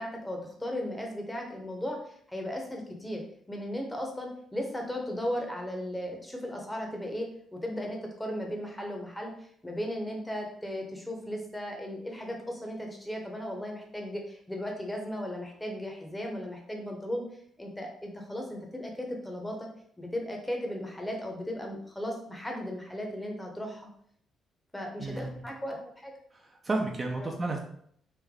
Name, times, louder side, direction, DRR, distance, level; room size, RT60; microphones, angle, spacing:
voice 1, 0.0-3.2 3.5-9.3 9.6-17.2 17.6-19.7 20.0-23.9 24.7-26.1 27.2-27.3, equal, 10° left, 1 dB, 0.8 m, -36 dB
voice 2, 25.0-25.4 26.3-27.6, right 2 dB, 30° right, 2 dB, 0.5 m, -32 dB
3.3 x 2.1 x 3.6 m, 0.65 s
cardioid pair, 90°, 0 cm